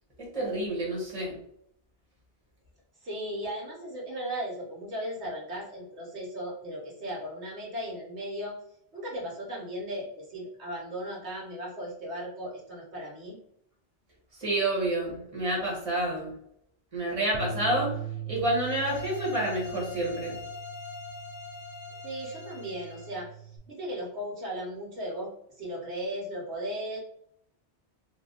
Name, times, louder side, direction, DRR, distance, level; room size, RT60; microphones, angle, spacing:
voice 1, 0.2-1.4 14.4-16.3 16.9-17.9 18.3-20.4, right 1 dB, 30° right, -3 dB, 1.4 m, -29 dB
voice 2, 3.0-8.6 8.9-13.4 22.0-27.0, equal, 80° right, -4 dB, 1.4 m, -36 dB
Bass guitar, 17.3-23.6, right 6 dB, 60° left, 0.8 m, -40 dB
sound 1, 18.4-23.2, left 5 dB, 35° left, 0.5 m, -43 dB
2.8 x 2.7 x 3.7 m, 0.71 s
omnidirectional pair, 1.1 m